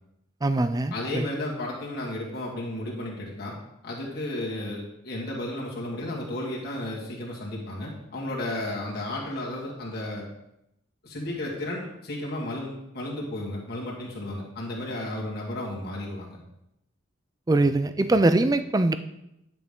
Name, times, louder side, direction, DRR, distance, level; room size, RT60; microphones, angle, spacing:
voice 1, 0.4-1.2 17.5-19.0, right 2 dB, 20° right, 0.4 m, -22 dB
voice 2, 0.9-3.5 3.8-10.3 11.0-16.4, left 1 dB, 55° left, 1.9 m, -33 dB
10.0 x 6.0 x 3.7 m
head